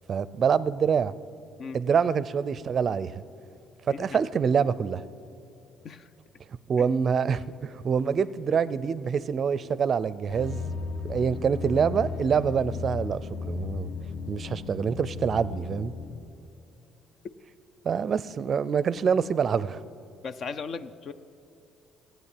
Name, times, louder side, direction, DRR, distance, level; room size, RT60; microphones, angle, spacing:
voice 1, 0.1-1.1 1.7-3.2 3.9-5.0 6.7-10.6 11.0-13.9 14.3-15.9 17.8-19.8, right 6 dB, 45° right, 17 dB, 0.5 m, -26 dB
voice 2, 3.9-4.2 5.8-6.1 6.8-6.9 20.2-21.1, left 5 dB, 50° left, 12 dB, 0.6 m, -37 dB
sound 1, 10.3-16.1, left 4 dB, 75° left, 2.4 m, -35 dB
15.0 x 9.2 x 8.4 m, 2.7 s
cardioid pair, 110°, 0 cm